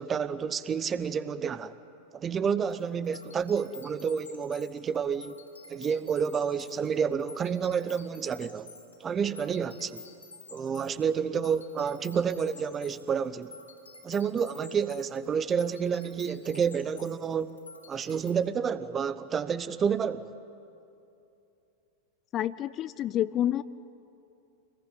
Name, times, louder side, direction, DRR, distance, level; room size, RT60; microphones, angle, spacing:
voice 1, 0.0-1.7 2.1-5.4 5.7-8.7 9.0-10.0 10.5-13.5 14.0-17.6 17.9-20.3, right 7 dB, 25° right, 1.0 m, -29 dB
sound 1, 2.7-18.3, left 4 dB, 80° left, 4.3 m, -50 dB
voice 2, 22.3-23.6, left 12 dB, 30° left, 0.5 m, -28 dB
27.5 x 20.5 x 9.4 m
figure-of-eight pair, 90°, 0 cm